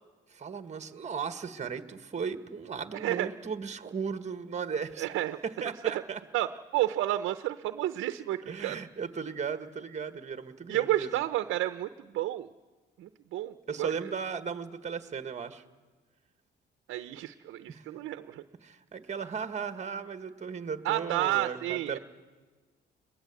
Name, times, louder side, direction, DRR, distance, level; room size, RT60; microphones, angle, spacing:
voice 1, 0.3-5.0 5.6-6.2 8.5-11.1 13.7-15.6 17.7-17.8 18.6-22.0, right 6 dB, 35° right, 9 dB, 1.5 m, -36 dB
voice 2, 2.9-3.3 5.0-5.4 5.8-5.9 6.3-8.8 10.7-12.5 13.0-14.1 16.9-18.4 20.8-22.0, right 14 dB, 85° right, 10 dB, 0.8 m, -31 dB
21.0 x 20.0 x 8.2 m, 1.3 s
cardioid pair, 90°, 20 cm